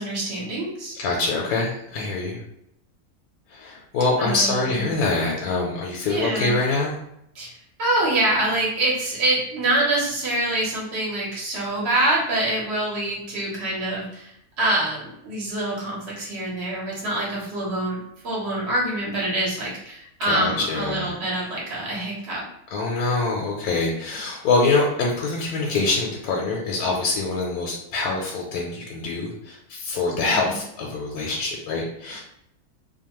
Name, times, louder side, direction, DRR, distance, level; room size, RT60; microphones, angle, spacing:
voice 1, 0.0-0.9 4.2-4.9 6.1-6.5 7.3-18.0 18.2-22.4 30.2-30.6, right 1 dB, 50° right, -5 dB, 1.2 m, -25 dB
voice 2, 0.9-2.4 3.5-7.0 20.2-21.1 22.7-32.2, left 3 dB, 80° left, -2 dB, 1.0 m, -25 dB
2.7 x 2.1 x 2.9 m, 0.77 s
omnidirectional pair, 1.5 m